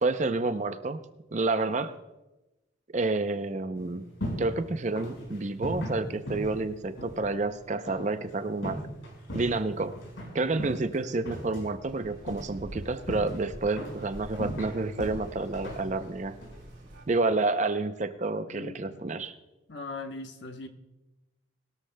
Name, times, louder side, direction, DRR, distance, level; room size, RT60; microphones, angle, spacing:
voice 1, 0.0-1.0 1.3-2.0 2.9-4.1 4.4-8.8 9.3-9.9 10.3-16.4 17.1-19.3, right 3 dB, 35° right, 0.5 m, -29 dB
sound 1, 3.8-17.2, equal, 80° left, 5.0 m, -40 dB
sound 2, 11.8-17.1, equal, 85° right, 3.6 m, -46 dB
voice 2, 18.5-19.0 19.7-20.7, left 3 dB, 60° left, 1.0 m, -40 dB
20.5 x 13.0 x 2.2 m
head